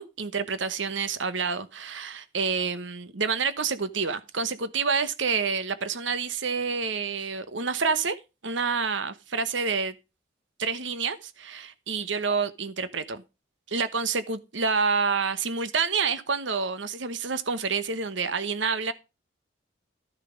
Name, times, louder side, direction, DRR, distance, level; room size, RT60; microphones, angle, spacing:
voice 1, 0.0-8.2 8.4-9.9 10.6-13.2 13.7-18.9, right 5 dB, 75° right, 1.0 m, -28 dB
13.0 x 6.9 x 5.1 m
head